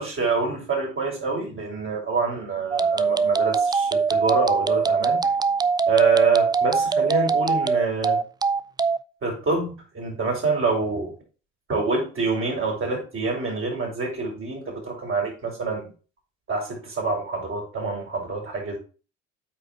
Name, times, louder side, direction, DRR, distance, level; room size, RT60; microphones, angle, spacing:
voice 1, 0.0-5.2 5.9-8.2 9.2-11.1 11.7-15.9 16.5-18.8, right 4 dB, 35° right, 0 dB, 5.0 m, -26 dB
sound 1, 2.7-9.0, right 5 dB, 10° right, 0.3 m, -22 dB
8.4 x 5.0 x 4.4 m, 0.35 s
hypercardioid pair, 65°, 37 cm